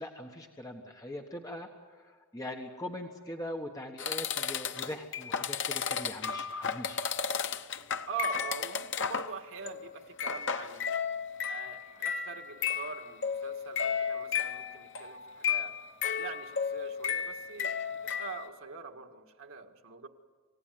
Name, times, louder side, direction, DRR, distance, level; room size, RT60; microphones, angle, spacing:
voice 1, 0.0-1.7 2.0-7.0, left 1 dB, 15° left, 2 dB, 1.3 m, -41 dB
sound 1, 4.0-9.4 9.7-9.9 10.2-18.5, left 7 dB, 55° left, 0.9 m, -33 dB
voice 2, 8.1-10.9 11.5-15.8 16.2-20.1, right 6 dB, 65° right, 4 dB, 2.0 m, -43 dB
27.5 x 17.0 x 9.4 m, 1.5 s
head